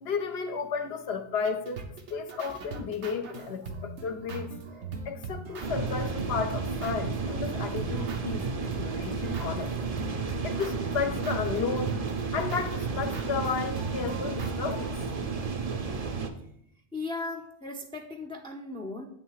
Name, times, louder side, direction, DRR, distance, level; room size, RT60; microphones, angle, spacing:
voice 1, 0.0-1.8 2.1-4.5 5.0-8.4 8.8-9.9 10.4-12.1 12.3-14.9, left 6 dB, 70° left, 0.8 m, -33 dB
sound 1, 1.4-15.0, right 4 dB, 85° right, 1.1 m, -40 dB
sound 2, 5.6-16.3, right 4 dB, 45° right, 0.5 m, -32 dB
voice 2, 16.9-19.1, left 3 dB, 10° left, 0.4 m, -37 dB
8.7 x 3.2 x 4.7 m
omnidirectional pair, 1.1 m